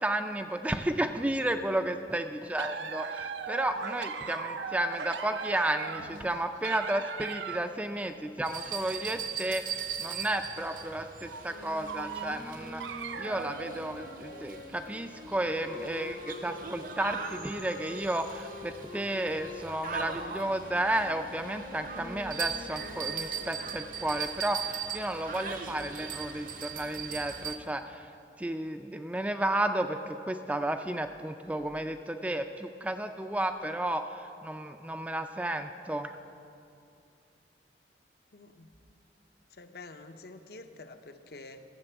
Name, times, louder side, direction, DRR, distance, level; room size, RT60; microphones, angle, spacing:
voice 1, 0.0-28.1 28.4-36.1, right 1 dB, 10° right, 7 dB, 0.3 m, -32 dB
sound 1, 2.6-7.8 8.5-8.9 9.4-9.5 10.1-10.2 11.2-11.5 11.8-14.6 15.0-15.1 16.1-16.4 17.2-17.4 17.8-17.9, right 6 dB, 90° right, 0.6 m, -39 dB
sound 2, 8.4-27.6, right 7 dB, 50° right, 0.7 m, -40 dB
Wind instrument woodwind instrument, 11.4-23.9, left 2 dB, 85° left, 2.4 m, -47 dB
voice 2, 15.8-16.2 38.3-38.7 39.5-41.6, left 3 dB, 60° left, 8 dB, 0.6 m, -48 dB
13.0 x 6.7 x 7.9 m, 2.6 s
head